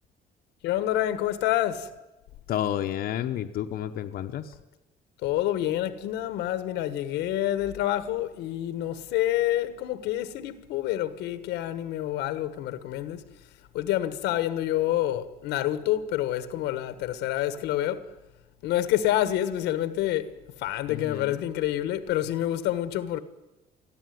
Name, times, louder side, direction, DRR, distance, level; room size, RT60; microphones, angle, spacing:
voice 1, 0.6-1.9 5.2-13.2 13.7-18.1 18.6-23.2, left 13 dB, 90° left, 1.4 m, -28 dB
voice 2, 2.5-4.5 20.9-21.4, left 11 dB, 65° left, 1.0 m, -31 dB
21.0 x 14.0 x 9.4 m
cardioid pair, 110°, 17 cm